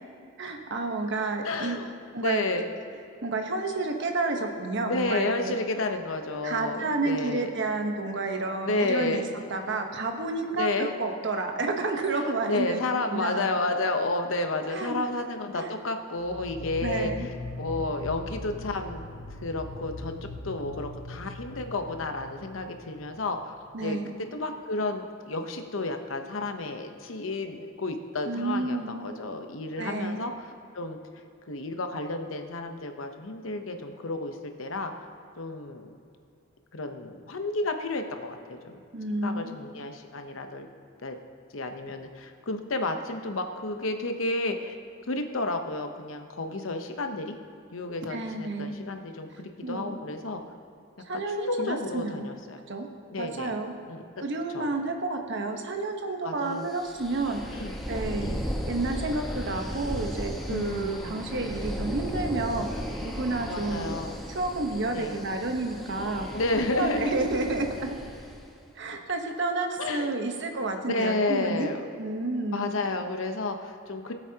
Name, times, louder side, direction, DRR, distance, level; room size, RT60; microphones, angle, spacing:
voice 1, 0.4-1.8 2.1-2.4 3.2-5.5 6.4-9.2 9.5-12.8 13.1-13.5 14.7-15.0 15.5-15.7 16.8-17.3 23.7-24.1 28.3-29.1 29.8-30.3 38.9-39.6 48.1-48.7 49.6-50.0 51.0-52.3 52.7-52.9 53.2-53.7 54.2-64.0 64.3-66.4 66.7-67.9 68.8-72.7, right 2 dB, 60° right, 4 dB, 1.1 m, -30 dB
voice 2, 1.4-1.9 2.2-2.6 4.9-7.5 8.6-9.3 10.5-10.9 12.5-17.3 17.6-19.0 19.4-20.1 20.4-30.5 30.7-31.0 31.5-34.9 35.4-35.9 36.7-38.8 39.2-40.7 41.0-41.2 41.5-44.8 45.1-47.3 47.7-50.4 51.1-52.6 53.1-53.6 53.9-54.2 54.5-54.7 56.2-56.7 57.5-57.7 58.2-58.4 60.5-61.2 63.4-64.2 64.9-65.2 66.3-67.1 69.8-70.1 70.9-71.8 72.5-74.1, left 2 dB, 75° left, 6 dB, 0.9 m, -31 dB
sound 1, 16.2-23.5, left 2 dB, 55° left, 1.6 m, -40 dB
sound 2, 56.7-68.5, equal, ahead, 1.2 m, -36 dB
19.0 x 8.2 x 2.9 m, 2.5 s
head